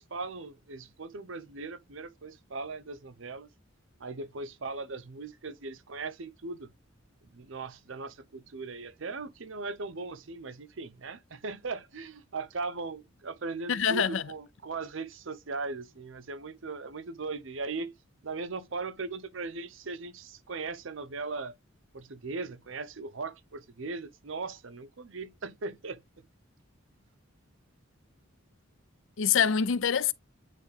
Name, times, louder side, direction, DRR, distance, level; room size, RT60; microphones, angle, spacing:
voice 1, 0.0-3.5 4.0-6.7 7.2-17.9 18.2-21.5 21.9-26.0, right 3 dB, 70° right, 0.8 m, -38 dB
voice 2, 13.7-14.3 29.2-30.1, left 7 dB, 70° left, 0.5 m, -25 dB
9.2 x 3.3 x 3.2 m
head